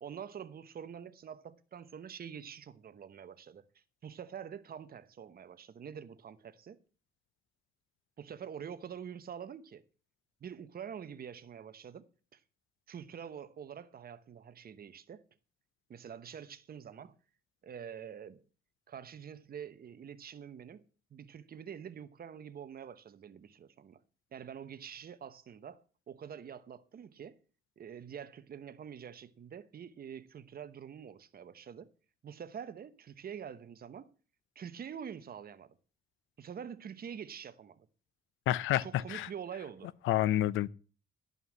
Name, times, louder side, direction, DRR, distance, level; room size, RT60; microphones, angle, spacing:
voice 1, 0.0-6.8 8.2-9.8 10.4-12.0 12.3-12.4 12.9-15.2 15.9-17.2 17.6-18.4 18.9-20.8 21.1-24.0 24.3-27.3 27.8-31.9 32.2-34.1 34.5-35.7 36.4-37.9 38.8-39.9, right 8 dB, 50° right, 1.0 m, -46 dB
voice 2, 38.5-39.3 40.0-40.7, left 14 dB, 85° left, 0.6 m, -29 dB
11.0 x 5.6 x 7.3 m
cardioid pair, 90°, 20 cm